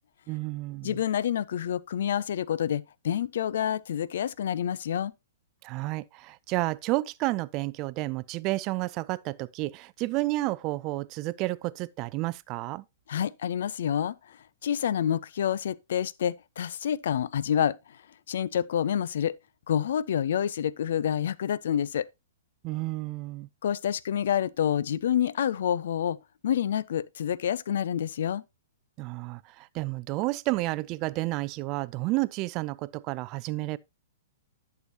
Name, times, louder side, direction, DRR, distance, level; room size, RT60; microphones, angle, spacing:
voice 1, 0.3-1.0 5.6-12.8 22.6-23.5 29.0-33.8, right 20 dB, 35° right, 0.4 m, -31 dB
voice 2, 0.8-5.1 13.1-14.4 14.6-18.0 18.3-19.4 19.7-22.1 23.6-26.2 26.4-28.4, left 9 dB, 60° left, 0.4 m, -28 dB
11.0 x 6.8 x 2.8 m
figure-of-eight pair, 115°, 0 cm